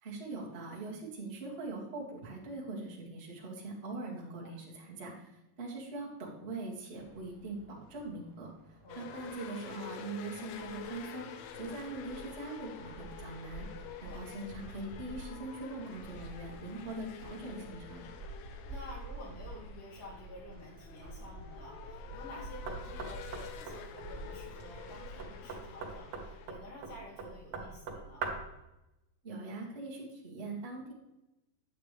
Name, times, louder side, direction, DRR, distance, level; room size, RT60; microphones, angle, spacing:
voice 1, 0.0-8.5 8.9-13.6 14.0-18.0 29.2-30.9, right 2 dB, 60° right, -4 dB, 0.6 m, -42 dB
sound 1, 7.0-26.0, right 2 dB, 35° right, 1.4 m, -49 dB
voice 2, 8.8-9.3 13.6-14.2 18.6-28.3, left 1 dB, 60° left, -5 dB, 4.1 m, -51 dB
sound 2, 8.9-26.5, left 9 dB, 75° left, 2.2 m, -49 dB
Knock, 22.7-28.6, right 4 dB, 90° right, 1.2 m, -42 dB
9.1 x 8.2 x 3.3 m, 0.94 s
omnidirectional pair, 4.5 m